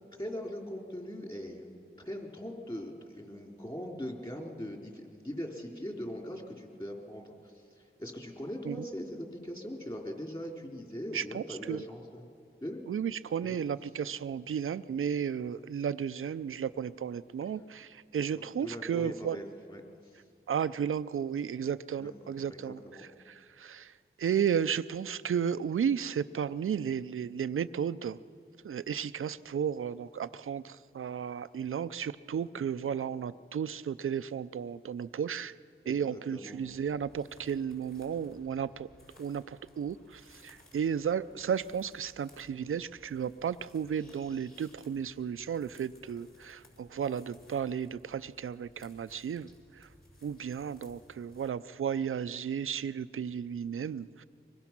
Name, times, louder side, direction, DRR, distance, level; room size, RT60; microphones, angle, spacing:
voice 1, 0.2-12.2 12.6-12.8 13.4-13.6 18.3-20.2 22.0-22.2 22.5-23.0 35.8-36.6, equal, 25° left, 1 dB, 3.7 m, -41 dB
voice 2, 11.1-11.9 12.9-19.4 20.5-28.2 28.6-35.5 35.9-38.9 39.2-49.9 50.2-54.2, right 8 dB, 75° right, 15 dB, 0.5 m, -34 dB
sound 1, 36.6-51.5, left 1 dB, 45° left, 5.1 m, -60 dB
24.5 x 21.0 x 6.0 m, 2.3 s
cardioid pair, 50°, 21 cm